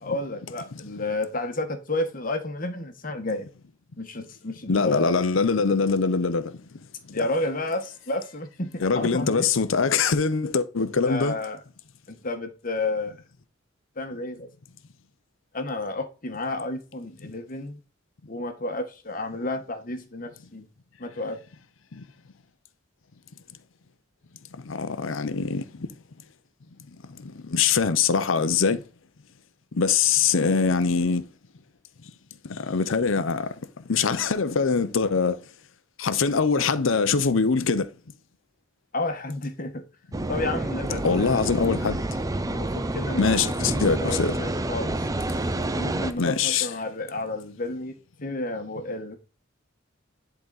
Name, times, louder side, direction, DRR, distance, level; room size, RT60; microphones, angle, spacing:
voice 1, 0.0-3.5 4.0-5.1 7.1-9.5 11.1-11.6 12.1-13.2 14.0-14.5 15.5-17.8 18.3-20.7 21.0-21.4 38.9-39.8 40.3-41.5 42.5-45.0 45.8-47.9 48.2-49.2, left 2 dB, 45° left, 1.2 m, -31 dB
voice 2, 4.7-6.5 7.2-7.3 8.8-11.4 24.7-25.6 27.4-28.8 29.8-31.2 32.5-33.5 33.9-35.4 36.0-37.9 41.0-42.0 43.2-44.4 46.2-46.7, left 5 dB, 80° left, 0.7 m, -23 dB
sound 1, 40.1-46.1, right 1 dB, 20° right, 0.5 m, -28 dB
10.5 x 4.0 x 4.0 m
head